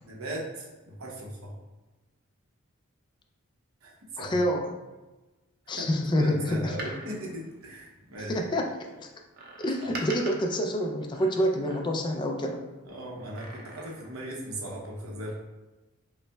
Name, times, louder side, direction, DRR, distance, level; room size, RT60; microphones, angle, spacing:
voice 1, 0.0-1.5 3.8-4.4 5.7-5.9 6.2-8.4 9.8-9.9 12.8-15.3, right 1 dB, 80° right, -2 dB, 0.8 m, -38 dB
voice 2, 4.2-4.7 5.7-6.6 8.3-8.7 9.0-9.1 9.6-12.6, equal, 20° left, 2 dB, 0.3 m, -27 dB
Door, 6.6-8.4 9.3-12.2 13.1-14.3 14.6-14.7, right 2 dB, 50° right, 0.6 m, -44 dB
5.4 x 2.0 x 2.2 m, 1.1 s
head